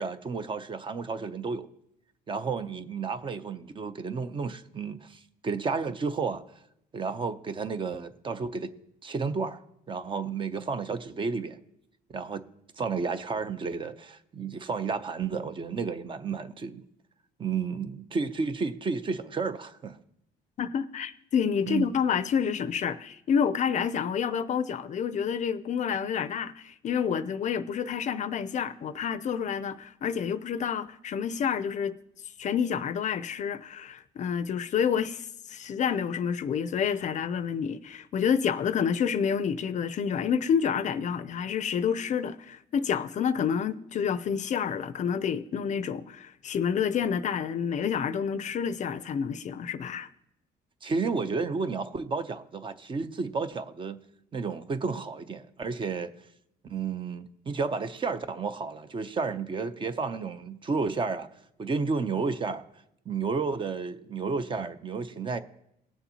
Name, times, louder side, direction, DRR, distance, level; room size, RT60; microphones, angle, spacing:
voice 1, 0.0-1.7 2.3-6.4 6.9-8.7 9.0-9.6 9.9-11.6 12.1-12.4 12.8-16.8 17.4-20.0 21.7-21.9 50.8-54.0 54.3-56.1 56.6-61.3 61.6-62.6 63.1-65.4, right 4 dB, 30° right, 0.6 m, -32 dB
voice 2, 20.6-32.0 32.4-50.1, left 7 dB, 45° left, 0.4 m, -29 dB
19.0 x 7.1 x 2.8 m
cardioid pair, 115°, 17 cm